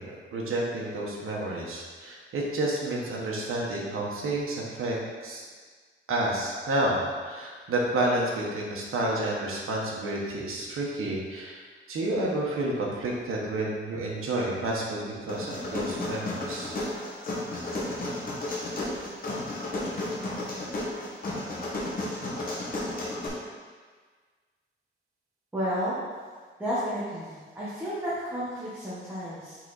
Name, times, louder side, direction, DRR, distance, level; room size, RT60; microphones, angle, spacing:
voice 1, 0.0-5.4 6.1-11.6 11.9-16.7 19.8-19.9, right 1 dB, 85° right, -3 dB, 1.3 m, -30 dB
sound 1, 15.3-23.3, left 2 dB, 45° left, 1.4 m, -33 dB
voice 2, 25.5-25.9 26.6-29.6, equal, 10° right, -10 dB, 1.2 m, -32 dB
6.1 x 4.2 x 4.1 m, 1.5 s
wide cardioid pair, 180°, 21 cm